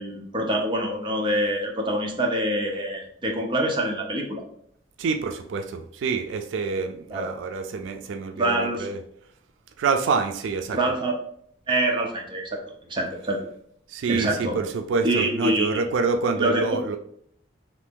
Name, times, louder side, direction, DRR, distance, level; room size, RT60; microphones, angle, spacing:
voice 1, 0.0-4.4 7.1-7.3 8.3-8.9 10.7-11.1 11.7-12.6 12.9-13.4 14.1-14.6 15.0-15.8 16.4-17.0, right 1 dB, 25° right, 1 dB, 0.6 m, -25 dB
voice 2, 5.0-9.0 9.8-10.8 13.9-17.0, right 4 dB, 90° right, 6 dB, 0.4 m, -27 dB
2.9 x 2.6 x 3.5 m, 0.65 s
head